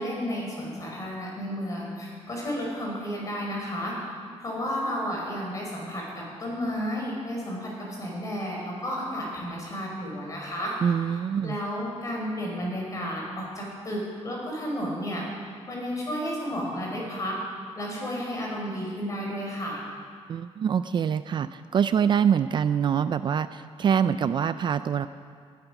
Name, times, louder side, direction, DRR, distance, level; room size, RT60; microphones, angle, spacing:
voice 1, 0.0-3.9 4.4-10.7 11.4-15.3 15.7-17.4 17.7-19.8, equal, 30° left, -2 dB, 4.9 m, -32 dB
voice 2, 10.8-11.6 20.3-25.1, right 7 dB, 45° right, 12 dB, 0.4 m, -25 dB
19.0 x 12.0 x 6.0 m, 2.1 s
wide cardioid pair, 165°, 11 cm